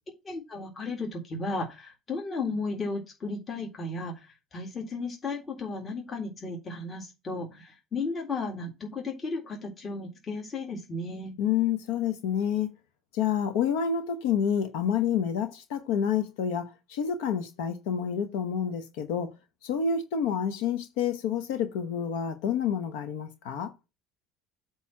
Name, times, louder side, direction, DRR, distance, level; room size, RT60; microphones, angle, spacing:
voice 1, 0.2-11.3, left 3 dB, 35° left, 2.0 m, -34 dB
voice 2, 11.4-12.7 13.1-19.3 19.6-23.7, left 8 dB, 70° left, 0.9 m, -28 dB
8.3 x 3.1 x 5.6 m
hypercardioid pair, 70°, 0 cm